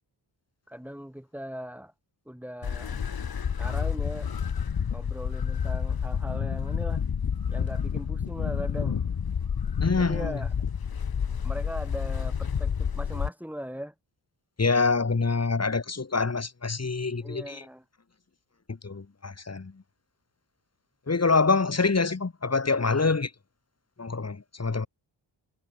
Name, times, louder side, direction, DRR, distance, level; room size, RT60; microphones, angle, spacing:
voice 1, 0.7-1.9 2.3-3.0 3.6-4.3 4.9-7.0 7.5-9.0 10.0-10.5 11.4-13.9 17.2-17.8, equal, 5° right, 7.9 m, -39 dB
sound 1, 2.6-13.3, left 7 dB, 50° left, 1.1 m, -29 dB
voice 2, 9.8-10.4 14.6-17.6 18.7-19.8 21.1-23.3 24.0-24.9, left 4 dB, 35° left, 2.2 m, -26 dB
wide cardioid pair, 125°, 47 cm